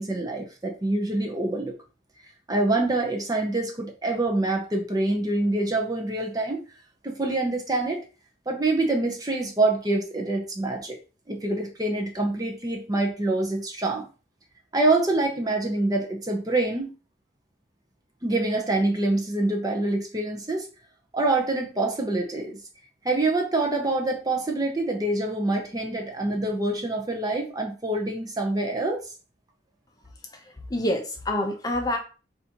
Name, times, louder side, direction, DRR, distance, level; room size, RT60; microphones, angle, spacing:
voice 1, 0.0-1.7 2.5-6.6 7.0-8.0 8.5-11.0 11.3-14.1 14.7-16.9 18.2-20.7 21.1-22.6 23.0-29.0, right 2 dB, 20° right, 2 dB, 0.7 m, -26 dB
voice 2, 30.3-32.0, left 1 dB, 20° left, 2 dB, 0.7 m, -27 dB
4.2 x 2.6 x 4.3 m, 0.34 s
head